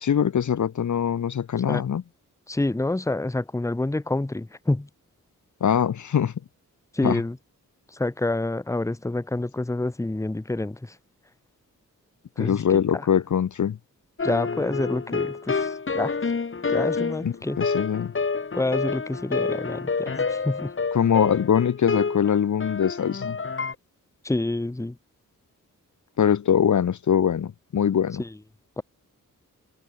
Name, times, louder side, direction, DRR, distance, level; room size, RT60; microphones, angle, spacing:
voice 1, 0.0-2.0 5.6-6.3 7.0-7.2 12.4-13.8 17.2-18.1 20.9-23.4 26.2-28.2, left 8 dB, 60° left, 1.0 m, -22 dB
voice 2, 2.5-4.9 6.9-7.4 7.9-11.0 12.4-13.0 14.2-16.1 16.7-17.6 18.5-20.7 24.2-25.0 28.2-28.3 28.8-28.9, left 2 dB, 10° left, 1.1 m, -28 dB
sound 1, 14.2-23.7, left 4 dB, 40° left, 4.8 m, -28 dB
wide cardioid pair, 175°, 33 cm